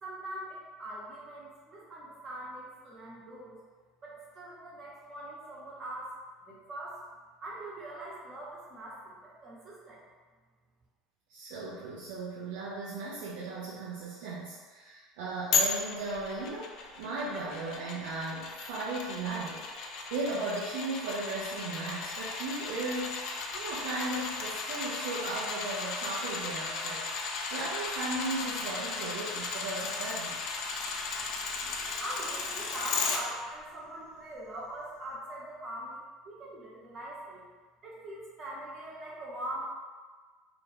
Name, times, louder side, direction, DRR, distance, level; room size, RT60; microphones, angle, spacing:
voice 1, 0.0-3.6 4.0-6.1 6.4-7.0 7.4-10.0 32.0-37.4 37.8-39.6, right 1 dB, 35° right, -5 dB, 0.9 m, -42 dB
voice 2, 11.3-19.6 20.1-27.1 27.5-30.5, right 2 dB, 65° right, -7 dB, 0.5 m, -36 dB
sound 1, 15.5-33.2 33.6-33.7, left 4 dB, 50° left, 0.4 m, -35 dB
2.4 x 2.4 x 3.4 m, 1.4 s
figure-of-eight pair, 65°, 0 cm